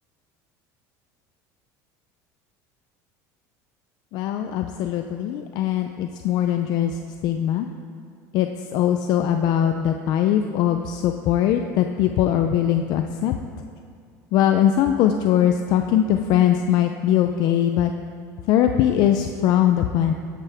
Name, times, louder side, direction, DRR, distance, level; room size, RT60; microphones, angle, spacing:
voice 1, 4.1-7.7 8.3-13.3 14.3-17.9 18.5-20.1, left 10 dB, 60° left, 6 dB, 0.6 m, -21 dB
13.0 x 10.5 x 3.5 m, 2.4 s
cardioid pair, 130°, 8 cm